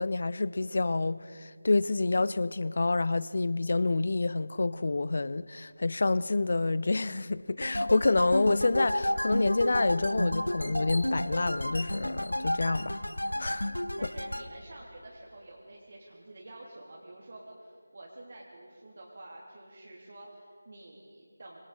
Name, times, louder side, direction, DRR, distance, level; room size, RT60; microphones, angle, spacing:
voice 1, 0.0-13.0 13.4-13.7, left 3 dB, 45° left, 0.5 m, -28 dB
sound 1, 7.6-14.5, left 1 dB, 85° left, 1.1 m, -31 dB
voice 2, 14.0-21.6, right 1 dB, 45° right, 3.1 m, -48 dB
26.5 x 24.5 x 4.2 m
figure-of-eight pair, 165°, 0 cm